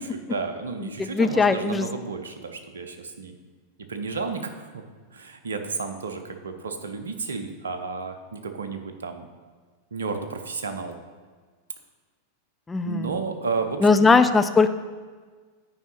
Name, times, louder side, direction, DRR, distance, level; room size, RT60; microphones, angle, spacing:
voice 1, 0.3-3.4 3.9-4.8 5.1-9.3 9.9-11.0 12.9-14.1, right 4 dB, 70° right, 7 dB, 0.7 m, -32 dB
voice 2, 0.8-1.9 12.7-13.2 13.8-14.7, left 4 dB, 15° left, 9 dB, 0.4 m, -20 dB
9.2 x 4.8 x 4.2 m, 1.5 s
figure-of-eight pair, 90°, 0 cm